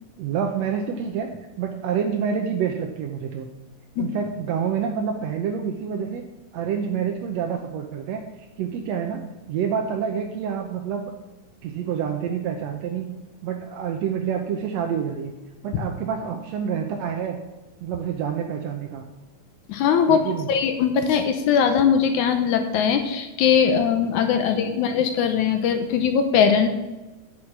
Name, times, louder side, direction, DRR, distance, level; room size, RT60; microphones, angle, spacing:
voice 1, 0.2-1.3 1.6-3.5 4.0-6.2 6.5-9.2 9.5-11.1 11.6-13.1 13.4-15.3 15.6-17.4 17.8-19.0 20.1-20.5, right 7 dB, 70° right, 3 dB, 1.7 m, -27 dB
voice 2, 19.7-26.7, left 7 dB, 70° left, 7 dB, 2.1 m, -20 dB
9.9 x 6.4 x 7.3 m, 1.1 s
omnidirectional pair, 3.8 m